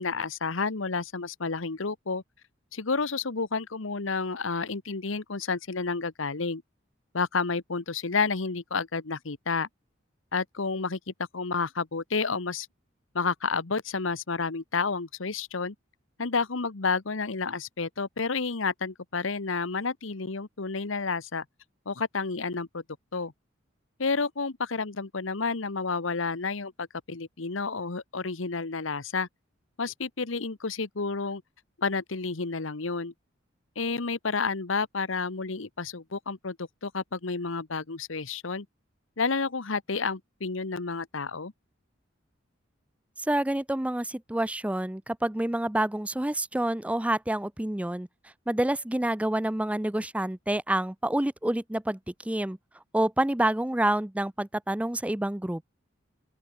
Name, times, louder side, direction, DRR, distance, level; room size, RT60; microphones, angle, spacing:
voice 1, 0.0-2.2 2.7-6.6 7.1-9.7 10.3-12.7 13.1-15.7 16.2-21.4 21.9-22.8 23.1-23.3 24.0-29.3 29.8-31.4 31.8-33.1 33.8-38.7 39.2-41.5, left 4 dB, 80° left, 1.2 m, -30 dB
voice 2, 43.2-48.1 48.5-52.6 52.9-55.6, right 1 dB, 5° right, 0.5 m, -28 dB
open air
head